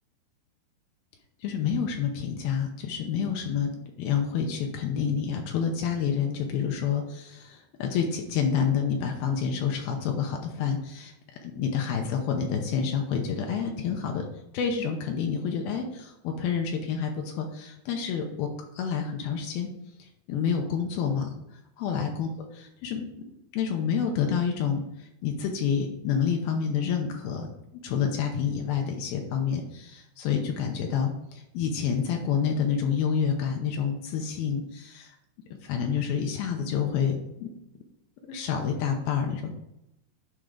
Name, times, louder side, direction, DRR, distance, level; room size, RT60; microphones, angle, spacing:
voice 1, 1.4-11.1 11.4-14.2 14.5-18.5 18.7-19.7 20.0-21.3 21.8-23.1 23.5-27.5 27.8-35.1 35.6-37.5 38.3-39.5, left 7 dB, 80° left, 3 dB, 2.2 m, -28 dB
11.5 x 4.5 x 3.8 m, 0.85 s
omnidirectional pair, 5.2 m